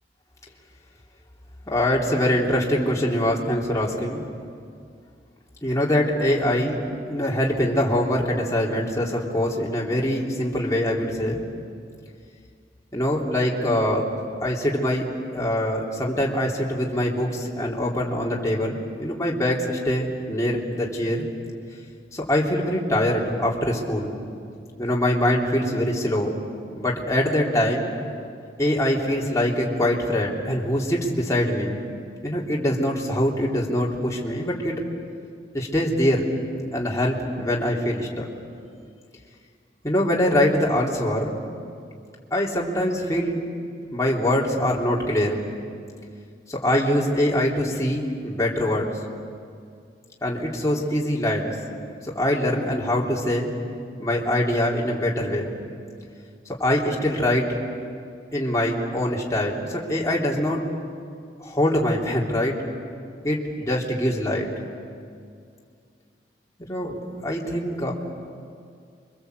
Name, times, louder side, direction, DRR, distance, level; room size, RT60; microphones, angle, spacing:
voice 1, 1.6-4.2 5.6-11.4 12.9-14.1 14.4-15.1 15.3-21.2 22.1-24.1 24.8-26.3 26.7-27.9 28.6-31.8 32.2-34.8 35.5-36.3 36.7-38.3 39.8-41.4 42.3-43.4 43.9-45.4 46.5-48.9 50.2-51.5 52.0-53.5 54.0-55.5 56.6-57.5 58.3-60.6 61.4-62.5 63.2-64.5 66.6-67.9, left 1 dB, 20° left, -3 dB, 3.3 m, -23 dB
29.0 x 24.5 x 8.1 m, 2.3 s
head